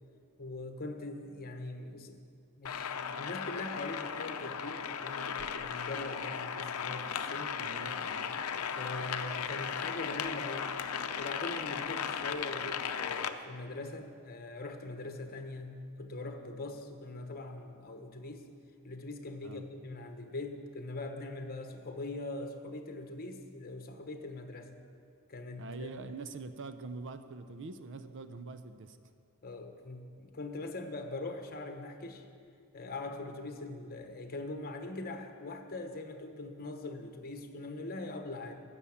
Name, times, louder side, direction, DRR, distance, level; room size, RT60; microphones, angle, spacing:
voice 1, 0.4-2.2 2.6-7.6 8.5-10.7 11.2-15.7 16.0-18.5 18.8-24.7 25.3-25.9 29.4-32.2 32.7-38.6, left 2 dB, 45° left, 6 dB, 1.1 m, -42 dB
sound 1, 2.6-13.3, left 7 dB, 80° left, 0.6 m, -36 dB
voice 2, 7.6-8.5 19.4-19.6 25.6-29.0, right 3 dB, 60° right, 10 dB, 0.6 m, -44 dB
13.0 x 7.0 x 8.5 m, 2.3 s
head